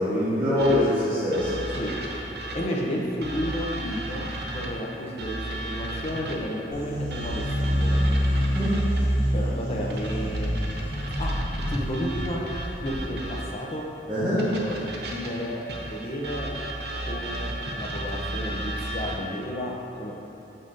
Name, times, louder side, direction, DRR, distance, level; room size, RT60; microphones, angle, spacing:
voice 1, 0.0-1.8 2.5-2.7 8.5-8.9 14.1-14.5, left 1 dB, 20° right, -15 dB, 1.2 m, -24 dB
sound 1, 0.6-2.8 3.2-6.6 7.1-9.2 9.9-13.7 14.4-19.3, right 1 dB, 65° right, 0.7 m, -34 dB
voice 2, 2.5-8.0 9.3-10.5 11.2-11.3 11.7-12.4 12.7-13.8 14.4-15.6 15.9-16.5 17.0-20.2, equal, 35° left, -3 dB, 0.6 m, -32 dB
sound 2, 6.7-13.2, equal, 65° left, 1.4 m, -27 dB
6.6 x 5.5 x 2.6 m, 2.9 s
head